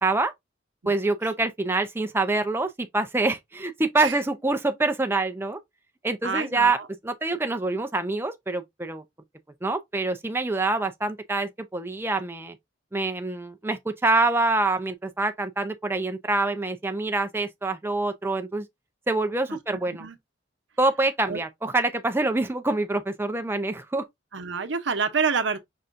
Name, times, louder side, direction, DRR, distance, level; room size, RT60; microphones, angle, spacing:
voice 1, 0.0-0.3 0.9-5.6 6.0-6.8 7.0-9.0 9.6-12.6 12.9-18.7 19.1-20.1 20.8-24.1, right 2 dB, 15° right, 0.5 m, -26 dB
voice 2, 6.2-6.9 20.0-20.2 21.3-21.4 24.3-25.6, right 5 dB, 75° right, 0.8 m, -27 dB
5.6 x 3.7 x 2.5 m
head